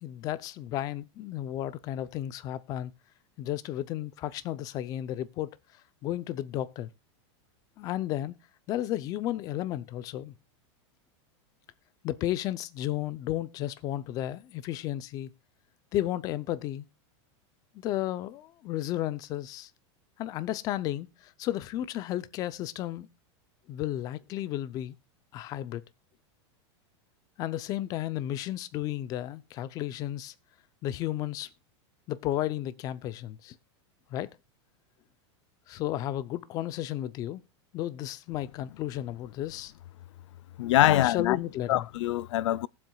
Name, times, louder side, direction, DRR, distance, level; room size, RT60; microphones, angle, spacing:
voice 1, 0.0-2.9 3.4-5.6 6.0-6.9 7.8-8.4 8.7-10.3 12.0-15.3 15.9-16.8 17.7-19.7 20.2-23.1 23.7-25.0 25.3-25.8 27.4-30.3 30.8-31.5 32.1-33.6 34.1-34.4 35.7-37.4 37.7-39.7 40.8-41.8, left 13 dB, 25° left, 0.5 m, -33 dB
voice 2, 40.6-41.4 41.7-42.7, left 14 dB, 85° left, 0.4 m, -24 dB
20.5 x 7.5 x 2.3 m
supercardioid pair, 170°, 15 cm